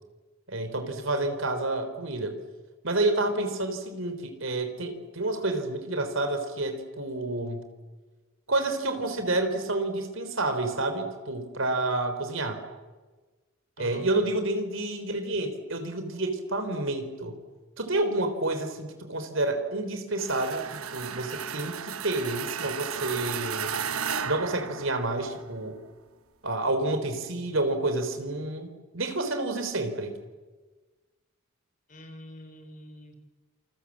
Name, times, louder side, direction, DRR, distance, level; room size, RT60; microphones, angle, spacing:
voice 1, 0.5-2.4 2.8-7.6 8.5-12.6 13.8-17.4 17.8-23.7 24.2-25.8 26.4-30.1, right 2 dB, 65° right, 8 dB, 4.0 m, -29 dB
sound 1, 20.2-25.4, right 7 dB, 80° right, 1.2 m, -34 dB
voice 2, 31.9-33.2, equal, 35° left, 6 dB, 4.0 m, -45 dB
28.5 x 28.0 x 7.5 m, 1.3 s
head